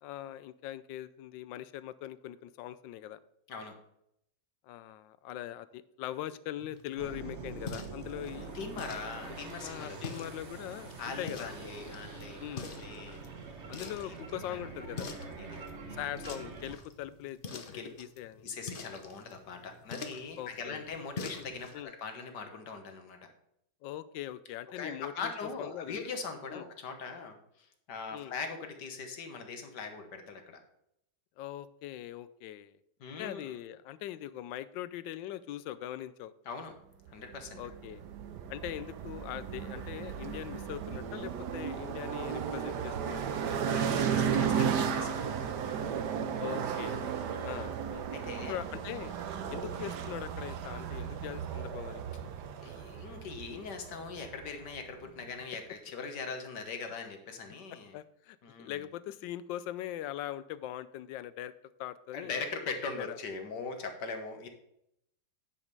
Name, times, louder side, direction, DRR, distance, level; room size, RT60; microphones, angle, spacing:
voice 1, 0.0-3.2 4.6-8.5 9.6-11.5 12.4-12.7 13.7-15.1 15.9-18.5 20.4-20.9 21.7-21.9 23.8-25.3 25.6-26.0 26.5-26.7 28.1-28.3 31.4-32.8 33.1-36.3 37.6-38.0 38.5-43.4 44.2-44.3 46.4-47.7 48.5-49.1 49.5-52.0 57.9-61.5 61.8-62.3 63.0-63.2, left 12 dB, 85° left, 16 dB, 1.3 m, -41 dB
sound 1, 6.6-21.8, left 4 dB, 40° left, 0.8 m, -47 dB
sound 2, 7.0-16.7, right 4 dB, 45° right, 1.2 m, -45 dB
voice 2, 8.5-10.2 11.0-13.2 14.0-14.6 15.4-15.6 17.7-17.9 18.4-23.2 24.7-30.6 33.0-33.5 36.5-36.8 37.1-37.6 38.7-38.8 43.5-45.3 47.3-47.7 48.1-48.6 49.5-49.6 52.6-58.0 58.4-58.8 62.1-64.5, left 4 dB, 70° left, 6 dB, 1.8 m, -41 dB
sound 3, 37.3-54.8, right 7 dB, 70° right, 1.4 m, -35 dB
9.6 x 5.1 x 5.3 m, 0.78 s
omnidirectional pair, 2.0 m